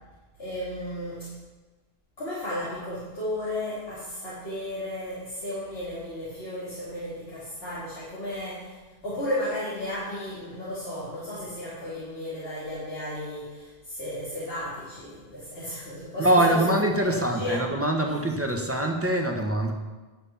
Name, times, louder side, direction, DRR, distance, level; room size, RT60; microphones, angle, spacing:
voice 1, 0.4-1.3 2.2-8.8 9.0-16.6 17.0-17.7, left 1 dB, 75° left, -9 dB, 2.9 m, -34 dB
voice 2, 16.2-19.7, right 1 dB, 15° right, 2 dB, 1.2 m, -24 dB
10.5 x 8.0 x 5.7 m, 1.3 s
omnidirectional pair, 1.0 m